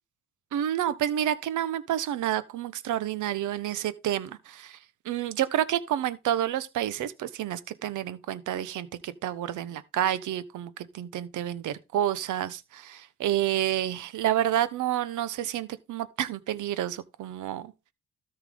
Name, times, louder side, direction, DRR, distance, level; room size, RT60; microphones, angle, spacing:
voice 1, 0.5-4.8 5.0-17.7, right 11 dB, 80° right, 1.1 m, -29 dB
13.0 x 5.7 x 3.8 m
cardioid pair, 90°, 30 cm